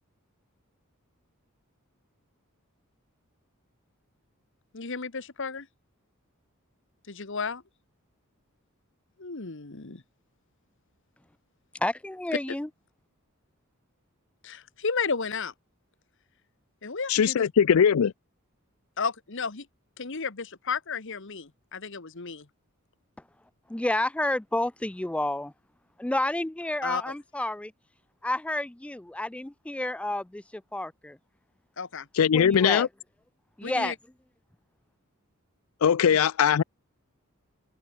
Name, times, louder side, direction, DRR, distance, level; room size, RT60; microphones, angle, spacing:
voice 1, 4.7-5.7 7.1-7.6 9.2-10.0 12.3-12.6 14.4-15.5 16.8-17.5 19.0-19.7 20.0-22.5 26.8-27.1 31.8-32.1 33.6-33.9 36.0-36.2, left 5 dB, 60° left, 1.5 m, -33 dB
voice 2, 11.8-12.7 23.7-25.5 26.0-27.7 28.2-30.4 30.7-31.2 32.3-32.9 33.6-33.9, left 1 dB, 5° left, 0.3 m, -30 dB
voice 3, 17.1-18.1 32.1-32.9 35.8-36.6, left 7 dB, 85° left, 0.4 m, -20 dB
head